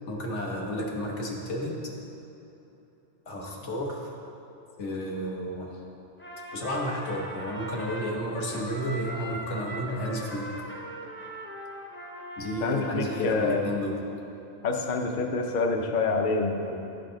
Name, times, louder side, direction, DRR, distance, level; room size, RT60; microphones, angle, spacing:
voice 1, 0.1-1.8 3.3-4.1 4.8-5.8 6.5-10.5 12.4-14.0, equal, 85° left, -1 dB, 1.4 m, -32 dB
Trumpet, 6.2-13.7, equal, 20° left, 0.4 m, -40 dB
voice 2, 12.6-13.6 14.6-16.8, left 3 dB, 55° left, 3 dB, 0.7 m, -27 dB
11.0 x 4.8 x 3.8 m, 3.0 s
omnidirectional pair, 1.2 m